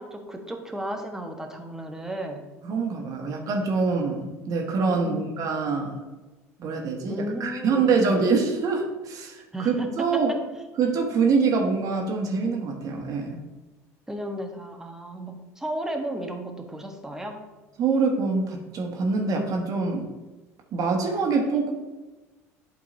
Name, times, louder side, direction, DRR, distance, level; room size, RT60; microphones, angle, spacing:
voice 1, 0.0-2.4 5.0-5.3 7.1-7.9 9.5-10.4 14.1-17.4, equal, 5° right, 3 dB, 1.3 m, -34 dB
voice 2, 2.6-6.0 6.6-10.3 10.8-13.4 17.8-20.0 20.7-21.7, right 4 dB, 45° right, 1 dB, 1.6 m, -25 dB
11.5 x 4.5 x 2.7 m, 1.2 s
hypercardioid pair, 65°, 8 cm